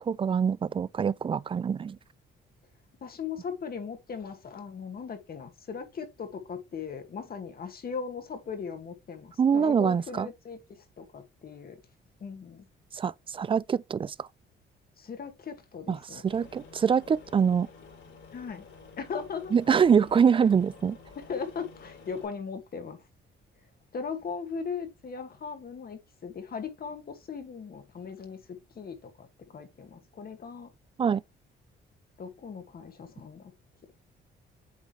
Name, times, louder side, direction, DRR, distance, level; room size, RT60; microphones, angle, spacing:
voice 1, 0.1-2.0 9.4-10.3 12.9-14.3 15.9-17.7 19.5-21.0 31.0-31.2, right 7 dB, 25° right, 0.3 m, -24 dB
voice 2, 3.0-11.8 12.2-12.6 15.0-16.2 18.3-18.7 19.0-19.5 21.3-23.0 23.9-30.7 32.2-33.5, left 6 dB, 50° left, 2.0 m, -38 dB
Aircraft, 16.3-22.3, left 5 dB, 70° left, 4.4 m, -51 dB
8.4 x 3.9 x 3.2 m
cardioid pair, 90°, 20 cm